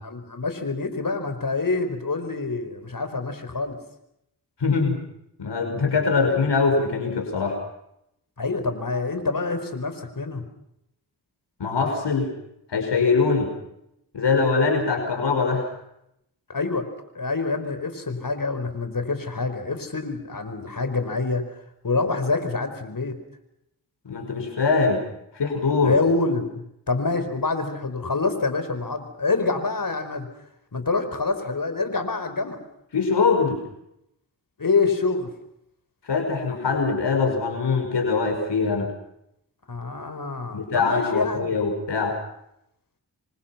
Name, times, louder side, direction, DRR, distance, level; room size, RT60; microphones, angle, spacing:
voice 1, 0.0-3.8 8.4-10.5 16.5-16.9 17.1-21.4 21.8-23.2 25.8-26.5 26.9-30.3 30.7-32.6 34.6-35.3 39.7-41.6, left 3 dB, 55° left, 9 dB, 4.9 m, -26 dB
voice 2, 4.6-5.0 5.4-7.6 11.6-12.3 12.7-13.5 14.1-15.7 24.1-25.0 25.3-26.0 32.9-33.6 36.0-38.9 40.5-42.1, left 4 dB, 85° left, 4 dB, 5.4 m, -22 dB
27.5 x 25.0 x 5.9 m, 0.80 s
cardioid pair, 50°, 41 cm